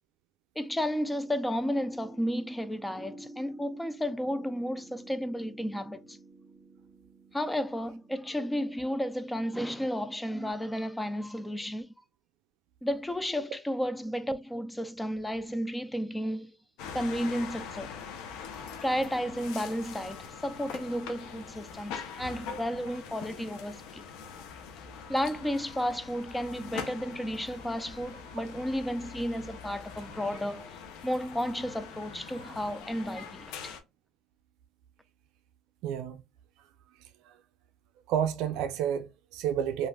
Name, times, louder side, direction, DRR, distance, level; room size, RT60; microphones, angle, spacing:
voice 1, 0.6-6.2 7.3-11.9 12.8-16.5 16.9-17.9 18.8-24.0 25.1-30.8 31.0-33.7, equal, 5° left, 0.3 m, -32 dB
sound 1, 0.8-10.5, right 2 dB, 45° right, 0.7 m, -51 dB
sound 2, 16.8-33.8, left 6 dB, 75° left, 0.6 m, -43 dB
voice 2, 35.8-36.2 37.0-37.4 38.1-39.9, right 9 dB, 75° right, 0.3 m, -30 dB
3.2 x 2.4 x 2.2 m
cardioid pair, 125°, 0 cm